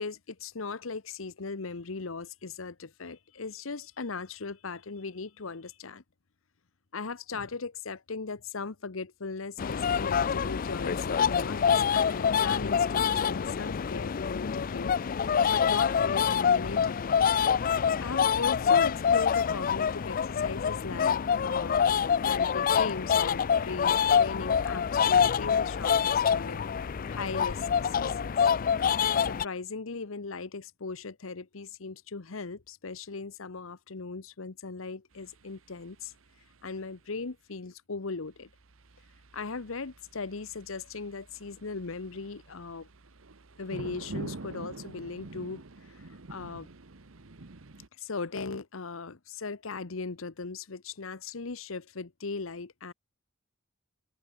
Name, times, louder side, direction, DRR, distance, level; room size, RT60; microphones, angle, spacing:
voice 1, 0.0-6.0 6.9-14.9 15.5-17.0 18.0-21.9 22.2-28.4 29.2-36.1 36.6-38.5 39.3-42.9 43.6-46.7 48.0-52.9, left 4 dB, 75° left, 1.0 m, -38 dB
sound 1, 9.6-29.4, left 7 dB, 45° left, 0.4 m, -26 dB
sound 2, 35.1-37.0 38.3-47.9, right 2 dB, 80° right, 1.3 m, -47 dB
open air
head